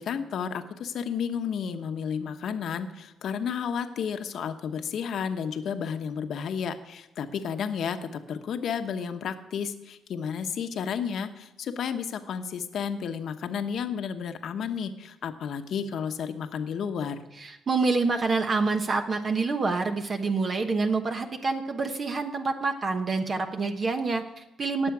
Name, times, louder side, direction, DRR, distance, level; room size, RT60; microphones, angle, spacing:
voice 1, 0.0-17.2, left 7 dB, 65° left, 8 dB, 1.0 m, -32 dB
voice 2, 17.4-24.9, right 4 dB, 40° right, 6 dB, 1.1 m, -27 dB
18.5 x 7.3 x 4.8 m, 1.0 s
cardioid pair, 90°, 0 cm